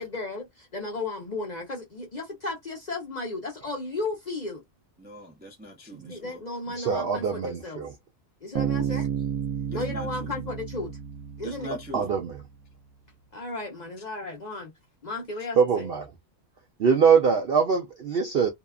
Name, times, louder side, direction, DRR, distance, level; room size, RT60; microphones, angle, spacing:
voice 1, 0.0-4.6 6.1-7.8 8.4-9.1 9.7-10.9 11.4-11.8 13.3-14.7 15.0-15.9, left 2 dB, 45° left, 0.6 m, -34 dB
voice 2, 5.0-6.4 9.7-10.3 11.4-12.1, equal, 15° right, 0.4 m, -41 dB
voice 3, 6.8-7.9 11.9-12.4 15.6-16.0 16.8-18.5, right 6 dB, 65° right, 0.6 m, -23 dB
Bass guitar, 8.6-12.1, right 8 dB, 90° right, 1.1 m, -31 dB
2.7 x 2.3 x 2.3 m
omnidirectional pair, 1.5 m